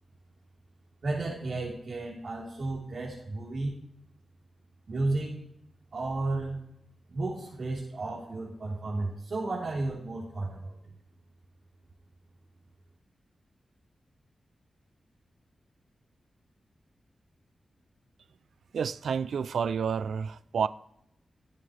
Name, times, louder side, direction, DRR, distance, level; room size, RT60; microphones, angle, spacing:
voice 1, 1.0-3.7 4.9-5.4 5.9-6.6 7.1-10.8, right 2 dB, 60° right, 3.9 m, -33 dB
voice 2, 18.7-20.7, right 6 dB, 90° right, 0.5 m, -29 dB
18.5 x 9.2 x 3.4 m
wide cardioid pair, 100°, 0 cm